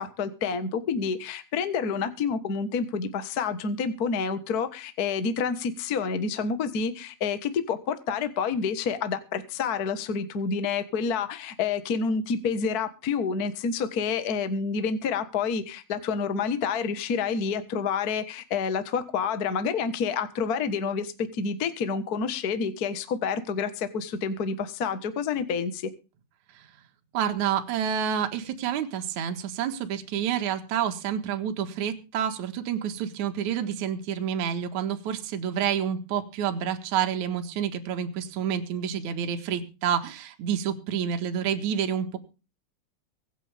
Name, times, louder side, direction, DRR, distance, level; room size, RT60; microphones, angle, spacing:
voice 1, 0.0-25.9, left 5 dB, 85° left, 10 dB, 0.8 m, -28 dB
voice 2, 27.1-42.2, right 8 dB, 60° right, 6 dB, 2.7 m, -29 dB
24.0 x 8.2 x 3.5 m, 0.33 s
omnidirectional pair, 4.2 m